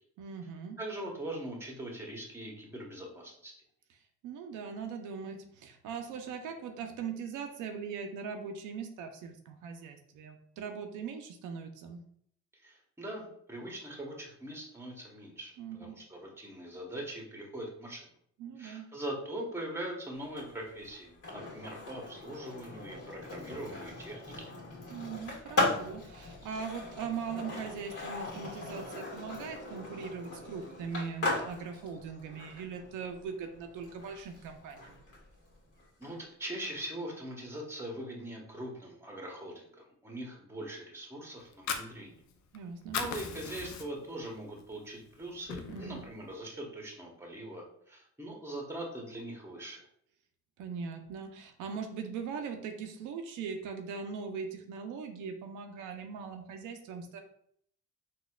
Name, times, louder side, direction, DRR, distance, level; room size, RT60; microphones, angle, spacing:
voice 1, 0.2-0.8 4.2-12.0 15.6-16.0 18.4-18.9 24.9-35.0 42.5-43.0 45.7-46.0 50.6-57.2, right 6 dB, 85° right, 5 dB, 0.5 m, -40 dB
voice 2, 0.8-3.5 12.6-18.0 18.6-24.5 36.0-42.2 42.9-49.8, right 1 dB, 10° right, 0 dB, 0.9 m, -42 dB
Skateboard, 20.2-36.1, left 2 dB, 55° left, 1.4 m, -38 dB
Fire, 41.4-42.6 42.8-44.2 44.6-44.7 45.1-46.1, left 6 dB, 70° left, 0.5 m, -37 dB
4.0 x 2.3 x 2.2 m, 0.66 s
cardioid pair, 90°, 30 cm